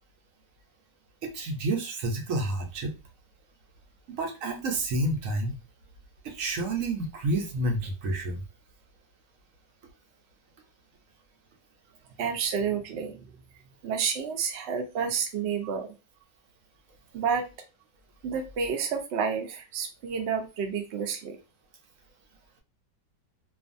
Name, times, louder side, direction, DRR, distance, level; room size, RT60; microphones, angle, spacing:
voice 1, 1.2-2.9 4.2-5.5 6.2-8.4, right 2 dB, 60° right, 2 dB, 0.9 m, -29 dB
voice 2, 12.2-13.2 13.8-15.9 17.1-17.4 18.2-21.4, right 6 dB, 85° right, 3 dB, 0.5 m, -30 dB
2.5 x 2.4 x 2.5 m, 0.28 s
omnidirectional pair, 1.8 m